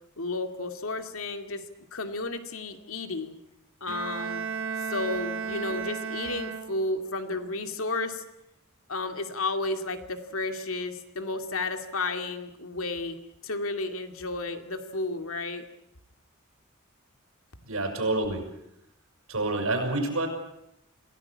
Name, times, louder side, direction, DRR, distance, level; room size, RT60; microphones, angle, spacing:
voice 1, 0.2-1.6 1.9-3.4 3.8-4.4 4.9-8.2 8.9-13.2 13.4-15.7, left 2 dB, 85° left, 7 dB, 2.4 m, -32 dB
Bowed string instrument, 3.9-7.1, right 5 dB, 65° right, 1.1 m, -34 dB
voice 2, 17.7-18.4 19.3-20.3, right 2 dB, 90° right, 4 dB, 6.5 m, -27 dB
26.5 x 17.5 x 8.5 m, 0.83 s
head